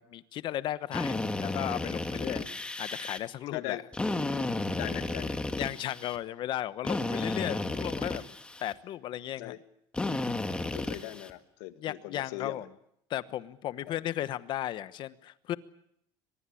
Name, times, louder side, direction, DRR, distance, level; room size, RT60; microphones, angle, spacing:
voice 1, 0.0-3.8 5.6-8.2 8.6-9.5 11.8-12.7 13.1-15.6, left 12 dB, 45° left, 15 dB, 1.1 m, -35 dB
Drill, 0.9-3.2 3.9-6.2 6.8-8.7 9.9-11.3, left 2 dB, 10° left, 1.7 m, -33 dB
voice 2, 1.1-1.4 3.5-3.8 4.8-5.4 9.4-9.6 10.7-12.7 13.8-14.0, left 16 dB, 80° left, 10 dB, 1.8 m, -40 dB
23.5 x 22.0 x 8.5 m, 0.75 s
cardioid pair, 145°, 11 cm